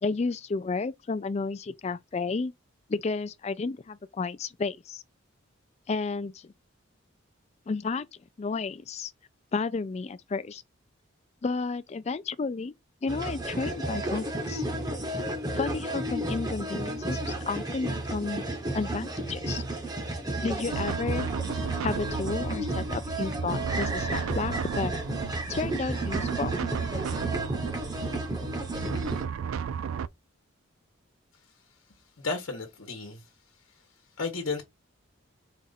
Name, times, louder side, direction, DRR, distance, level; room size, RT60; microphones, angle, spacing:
voice 1, 0.0-2.5 2.9-5.0 5.9-6.5 7.7-8.1 8.4-9.1 9.5-10.6 11.4-12.7 13.0-14.6 15.5-18.4 18.7-19.6 20.4-21.3 21.8-24.9 25.5-26.5, left 4 dB, 30° left, 0.3 m, -32 dB
sound 1, 13.1-29.2, right 1 dB, 20° right, 0.8 m, -32 dB
sound 2, 20.7-30.1, right 7 dB, 85° right, 0.3 m, -34 dB
voice 2, 32.2-33.2 34.2-34.6, left 4 dB, 75° left, 1.1 m, -32 dB
4.3 x 2.4 x 4.0 m
head